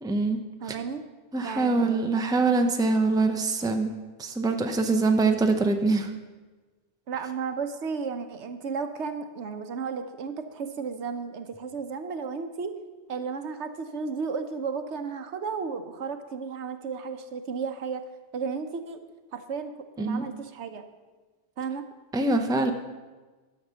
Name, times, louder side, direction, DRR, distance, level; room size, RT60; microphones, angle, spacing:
voice 1, 0.0-0.4 1.3-6.1 20.0-20.3 22.1-22.7, right 3 dB, 5° right, 5 dB, 0.6 m, -24 dB
voice 2, 0.6-1.0 1.4-2.1 7.1-12.7 13.1-18.0 18.3-19.0 19.3-20.8 21.6-21.8, right 5 dB, 80° right, 8 dB, 1.1 m, -33 dB
11.5 x 6.5 x 6.8 m, 1.3 s
omnidirectional pair, 1.2 m